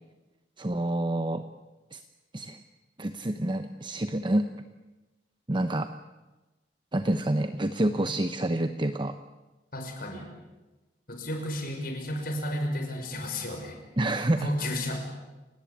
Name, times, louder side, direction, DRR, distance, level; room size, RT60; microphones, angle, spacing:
voice 1, 0.6-1.4 1.9-2.0 2.3-2.6 3.0-4.5 5.5-5.9 6.9-9.2 14.0-14.5, right 1 dB, 25° right, 8 dB, 0.9 m, -28 dB
voice 2, 9.7-10.3 11.1-13.8 14.4-15.0, left 1 dB, 55° left, 4 dB, 5.9 m, -32 dB
30.0 x 18.5 x 8.6 m, 1.1 s
head